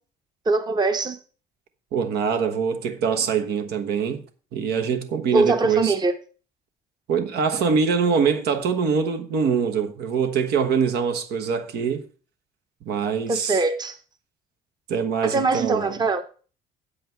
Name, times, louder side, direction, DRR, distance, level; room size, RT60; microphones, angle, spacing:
voice 1, 0.5-1.2 5.3-6.1 13.3-14.0 15.2-16.2, right 3 dB, 25° right, 1.0 m, -22 dB
voice 2, 1.9-4.2 4.5-5.9 7.1-12.1 12.8-13.6 14.9-16.0, right 6 dB, 75° right, 1.3 m, -23 dB
8.3 x 7.8 x 4.6 m
cardioid pair, 110°, 17 cm